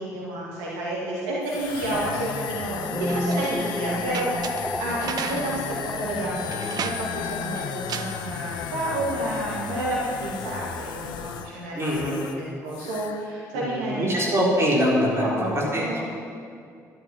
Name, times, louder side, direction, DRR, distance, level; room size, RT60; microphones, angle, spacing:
voice 1, 0.0-5.6 6.0-14.4 15.1-16.0, right 1 dB, 70° right, -5 dB, 2.2 m, -30 dB
sound 1, 1.4-12.4 12.7-13.2, left 9 dB, 55° left, 0.7 m, -35 dB
sound 2, 2.7-11.1 11.4-11.7, left 1 dB, 5° left, 0.4 m, -35 dB
sound 3, 3.1-8.6, right 7 dB, 45° right, 0.7 m, -37 dB
voice 2, 11.7-12.4 13.5-16.0, equal, 30° right, -5 dB, 4.2 m, -24 dB
12.5 x 12.0 x 6.2 m, 2.3 s
figure-of-eight pair, 50°, 9 cm